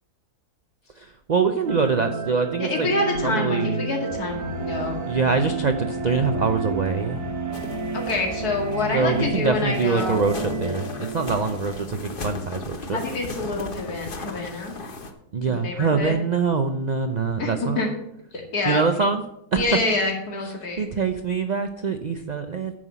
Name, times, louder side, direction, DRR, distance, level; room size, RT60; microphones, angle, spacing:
voice 1, 1.0-2.9 3.2-3.8 5.1-7.2 8.9-13.0 15.3-17.8 18.6-19.2 19.5-19.6 20.4-22.8, right 5 dB, 55° right, 7 dB, 0.5 m, -24 dB
sound 1, 1.7-11.9, right 3 dB, 85° right, 2.4 m, -31 dB
voice 2, 2.6-5.0 7.9-10.2 12.9-14.7 15.5-16.2 17.4-17.9 18.3-18.8 19.6-20.8, left 2 dB, 75° left, 1 dB, 2.6 m, -27 dB
sound 2, 4.1-9.3, left 2 dB, 15° right, 0.7 m, -38 dB
sound 3, 7.5-15.1, left 2 dB, 40° left, 1.1 m, -37 dB
9.8 x 5.7 x 8.2 m, 0.79 s
omnidirectional pair, 1.7 m